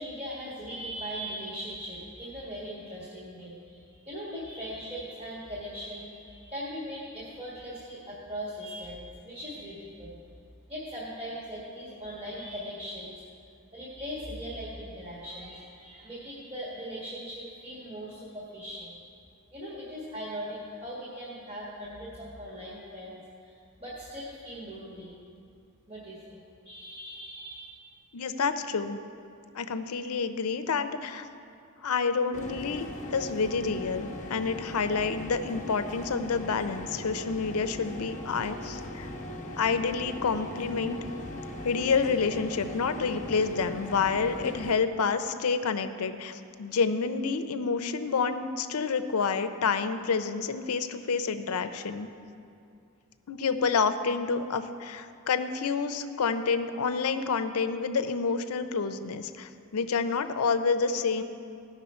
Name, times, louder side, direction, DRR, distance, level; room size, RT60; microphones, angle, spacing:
voice 1, 0.0-10.2 10.7-13.2 13.7-19.0 19.5-25.1 25.9-27.6, equal, 25° right, -8 dB, 1.5 m, -40 dB
voice 2, 28.1-29.0 29.5-31.3 31.8-32.9 33.1-39.1 39.6-41.0 41.6-52.1 53.3-61.2, left 5 dB, 85° left, 10 dB, 0.5 m, -28 dB
sound 1, 32.3-44.7, left 1 dB, 35° left, 1.0 m, -39 dB
16.0 x 6.1 x 4.3 m, 2.5 s
head